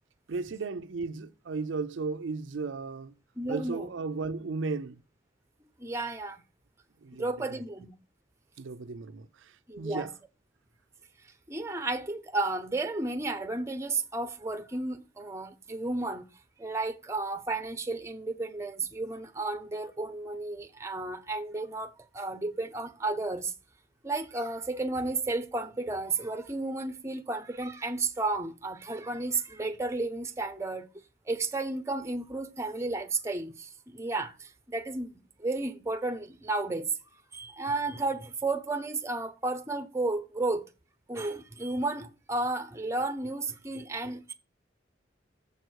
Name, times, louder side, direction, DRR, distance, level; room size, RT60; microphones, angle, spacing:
voice 1, 0.3-3.1 3.5-5.0 7.0-7.6 8.6-10.1, right 4 dB, 80° right, 0.5 m, -35 dB
voice 2, 3.4-3.9 5.8-6.4 7.2-7.9 9.7-10.1 11.5-16.3 16.6-23.5 24.0-30.9 31.3-35.1 35.4-36.9 37.3-40.7 41.1-44.3, right 2 dB, 15° right, 0.7 m, -33 dB
7.7 x 7.1 x 4.6 m
head